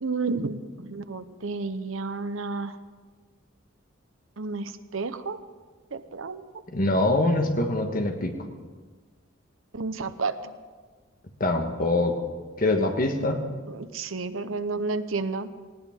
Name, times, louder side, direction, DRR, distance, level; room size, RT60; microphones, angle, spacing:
voice 1, 0.0-2.7 4.4-5.4 5.9-6.4 9.7-10.4 13.7-15.5, right 4 dB, 85° right, 11 dB, 0.8 m, -31 dB
voice 2, 6.7-8.3 11.4-12.2 12.6-13.5, left 2 dB, 45° left, 5 dB, 1.5 m, -24 dB
19.0 x 16.5 x 3.7 m, 1.4 s
head